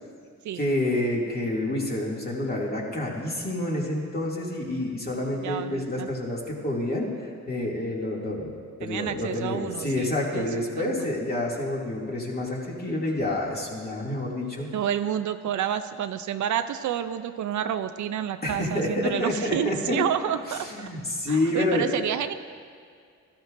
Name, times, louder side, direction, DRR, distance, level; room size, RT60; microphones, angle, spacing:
voice 1, 0.5-14.7 18.4-20.0 20.5-21.9, left 1 dB, 30° left, -3 dB, 2.5 m, -28 dB
voice 2, 5.4-6.1 8.8-10.5 10.8-11.1 14.7-20.9 21.3-22.3, right 10 dB, 65° right, 10 dB, 0.5 m, -29 dB
13.0 x 13.0 x 2.6 m, 2.2 s
cardioid pair, 70°, 31 cm